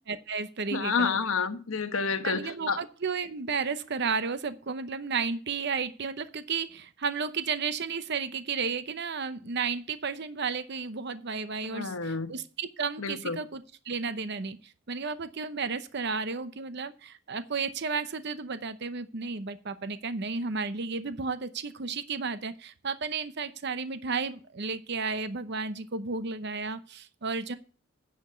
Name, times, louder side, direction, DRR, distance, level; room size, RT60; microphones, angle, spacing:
voice 1, 0.1-1.2 2.2-27.5, right 5 dB, 50° right, 0.7 m, -33 dB
voice 2, 0.7-2.8 11.7-12.3 13.0-13.4, left 5 dB, 70° left, 1.1 m, -29 dB
9.9 x 5.2 x 8.1 m
head